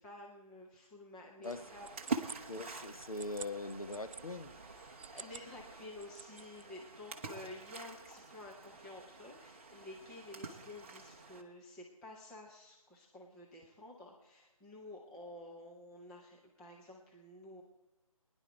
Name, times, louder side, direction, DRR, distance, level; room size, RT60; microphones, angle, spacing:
voice 1, 0.0-1.9 4.6-17.6, left 2 dB, 5° left, -3 dB, 0.5 m, -51 dB
Splash splatter, 1.4-11.4, right 4 dB, 20° right, 0.9 m, -46 dB
sound 1, 1.4-4.2 4.9-5.5 5.8-6.6, right 5 dB, 60° right, 0.4 m, -50 dB
voice 2, 2.5-4.5, left 2 dB, 75° left, 8 dB, 1.2 m, -41 dB
20.0 x 10.5 x 4.5 m, 1.0 s
figure-of-eight pair, 150°, 19 cm